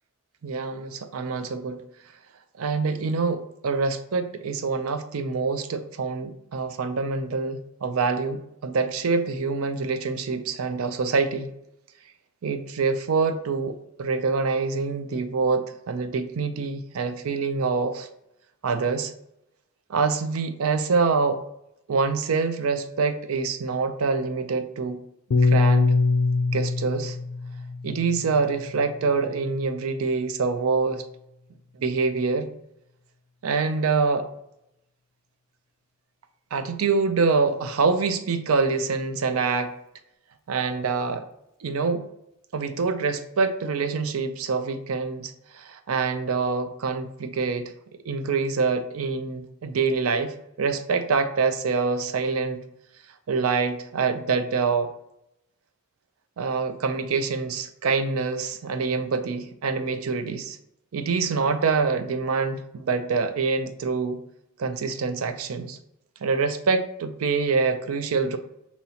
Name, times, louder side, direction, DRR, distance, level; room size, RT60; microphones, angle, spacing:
voice 1, 0.4-1.8 2.6-11.5 12.4-18.1 18.6-19.1 19.9-21.4 21.9-25.0 25.4-25.9 26.5-27.2 27.8-31.0 31.8-32.5 33.4-34.3 36.5-39.7 40.5-41.2 41.6-42.0 42.5-47.7 48.1-52.6 53.3-54.9 56.4-60.6 60.9-64.2 64.6-65.8 66.2-68.4, right 4 dB, 90° right, 10 dB, 0.5 m, -25 dB
Piano, 25.3-29.7, left 3 dB, 60° left, 0.4 m, -24 dB
5.5 x 2.9 x 2.8 m, 0.81 s
head